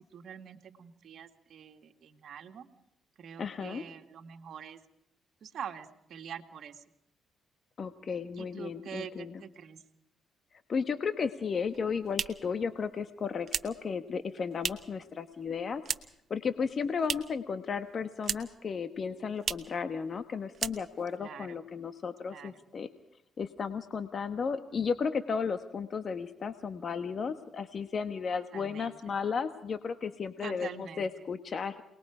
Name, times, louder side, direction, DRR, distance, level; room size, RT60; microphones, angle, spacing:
voice 1, 0.1-2.7 3.2-4.8 5.4-6.8 8.4-9.8 21.2-21.6 22.3-22.6 28.5-29.1 30.4-31.1, right 8 dB, 65° right, 7 dB, 2.0 m, -45 dB
voice 2, 3.4-3.8 7.8-9.4 10.7-15.8 16.3-22.9 23.4-31.8, left 5 dB, 45° left, 9 dB, 1.3 m, -34 dB
sound 1, 11.6-15.0 15.3-16.3 16.6-17.5 17.8-18.7 18.9-19.0 19.4-19.8 20.1-20.3 20.5-21.2, right 7 dB, 50° right, 1.3 m, -37 dB
28.0 x 20.5 x 5.0 m, 0.78 s
cardioid pair, 90°, 0 cm